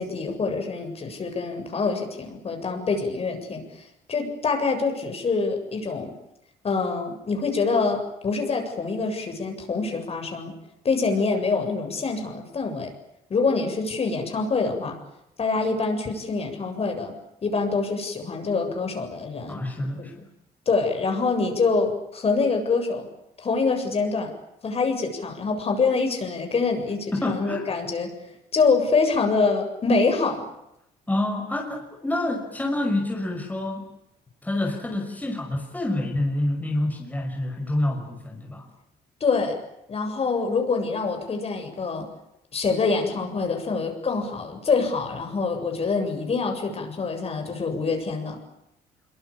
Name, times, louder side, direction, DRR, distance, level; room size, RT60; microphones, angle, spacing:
voice 1, 0.0-6.1 6.6-10.5 10.8-12.9 13.3-15.0 15.4-17.1 17.4-19.6 20.0-20.1 20.7-23.1 23.4-24.3 24.6-28.1 28.5-30.4 39.2-39.6 39.9-42.1 42.5-48.4, left 4 dB, 35° left, 4 dB, 7.7 m, -25 dB
voice 2, 19.5-20.2 27.1-27.7 31.1-33.9 34.4-38.6, left 1 dB, 10° left, 1 dB, 5.9 m, -27 dB
26.0 x 23.5 x 8.8 m, 0.83 s
cardioid pair, 110°, 17 cm